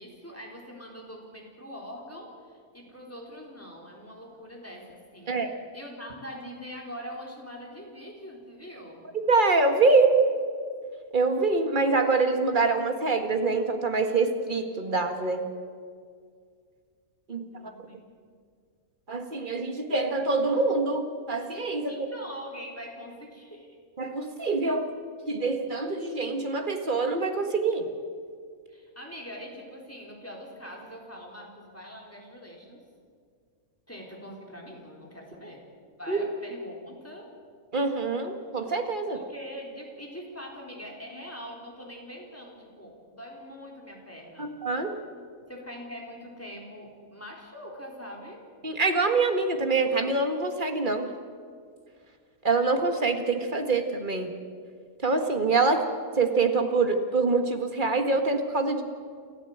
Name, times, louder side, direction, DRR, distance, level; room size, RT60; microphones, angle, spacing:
voice 1, 0.0-5.4 5.7-9.1 17.5-18.0 21.9-23.8 28.7-32.8 33.9-35.7 36.0-37.3 39.1-44.5 45.5-48.5, equal, 10° left, -1 dB, 3.9 m, -43 dB
voice 2, 9.3-10.2 11.1-15.5 17.3-17.5 19.1-22.1 24.0-24.9 25.3-27.9 36.1-36.2 37.7-39.2 44.4-44.9 48.6-51.1 52.4-54.3 55.0-55.8 56.2-58.8, right 3 dB, 35° right, 5 dB, 1.8 m, -25 dB
29.5 x 13.5 x 8.0 m, 2.1 s
omnidirectional pair, 1.5 m